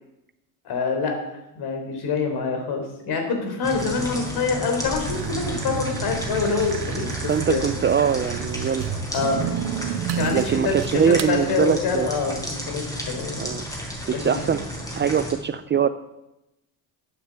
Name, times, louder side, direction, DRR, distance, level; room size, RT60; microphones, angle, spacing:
voice 1, 0.6-1.2 1.5-7.6 8.9-9.4 10.1-13.5 14.1-14.6, left 4 dB, 55° left, 4 dB, 3.8 m, -26 dB
sound 1, 3.6-15.3, equal, 10° left, 4.4 m, -33 dB
sound 2, 5.0-11.3, right 9 dB, 65° right, 1.0 m, -31 dB
voice 2, 7.3-8.8 10.3-12.1 13.4-13.6 14.1-14.6 14.9-15.9, right 8 dB, 25° right, 12 dB, 0.4 m, -22 dB
9.6 x 8.5 x 8.2 m, 0.91 s
supercardioid pair, 105°, 45 cm